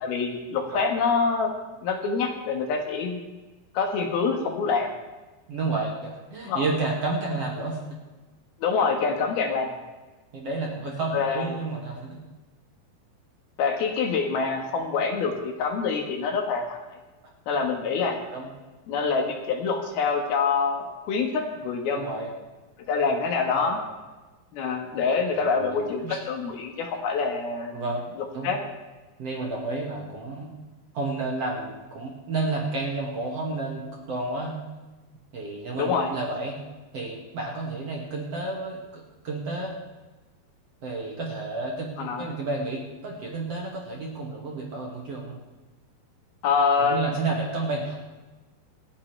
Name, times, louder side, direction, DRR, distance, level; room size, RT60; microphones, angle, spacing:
voice 1, 0.0-1.5 1.8-3.2 3.7-4.9 6.5-6.6 8.6-9.7 11.1-11.6 13.6-16.8 17.5-18.2 18.9-22.1 22.9-23.8 24.5-27.8 28.4-28.6 35.7-36.1 42.0-42.3 46.4-47.1, left 5 dB, 70° left, 3 dB, 3.2 m, -26 dB
voice 2, 5.5-8.0 10.3-12.2 17.7-17.8 18.3-18.5 21.9-22.3 23.5-23.8 25.3-26.2 27.7-28.0 28.3-28.5 29.2-30.6 30.9-34.6 35.3-36.6 36.9-39.8 40.8-45.4 46.8-47.9, right 3 dB, 45° right, -2 dB, 2.6 m, -31 dB
28.0 x 9.9 x 3.3 m, 1.2 s
omnidirectional pair, 4.8 m